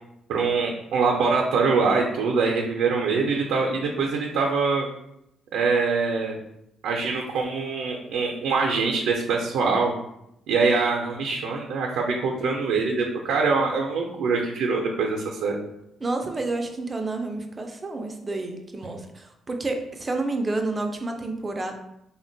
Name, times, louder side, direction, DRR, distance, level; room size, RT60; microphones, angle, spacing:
voice 1, 0.3-4.9 5.5-6.4 6.8-9.9 10.5-15.6, right 4 dB, 90° right, 0 dB, 0.4 m, -24 dB
voice 2, 16.0-21.7, right 2 dB, 20° right, 4 dB, 0.3 m, -29 dB
3.5 x 2.1 x 2.6 m, 0.81 s
cardioid pair, 125°, 0 cm